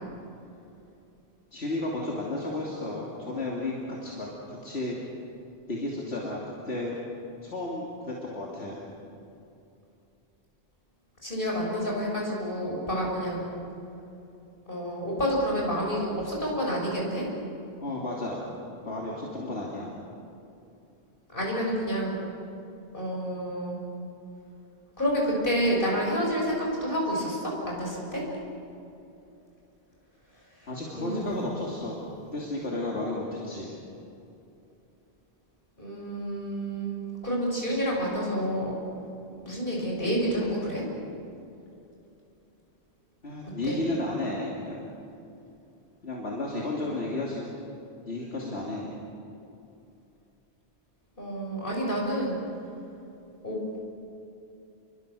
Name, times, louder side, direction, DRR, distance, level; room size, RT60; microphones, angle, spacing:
voice 1, 1.5-4.9 5.7-6.9 7.4-8.8 17.8-18.5 18.8-19.9 30.7-33.8 43.2-44.8 46.0-47.5 48.1-49.0, left 2 dB, 75° left, -4 dB, 3.2 m, -33 dB
voice 2, 11.2-13.5 14.7-17.3 21.3-22.2 22.9-23.8 25.0-28.3 31.0-31.3 35.8-37.0 37.2-38.7 39.4-40.8 43.6-43.8 51.2-52.4 53.4-53.6, equal, 55° left, -2 dB, 7.0 m, -29 dB
29.5 x 23.5 x 7.0 m, 2.8 s
omnidirectional pair, 1.1 m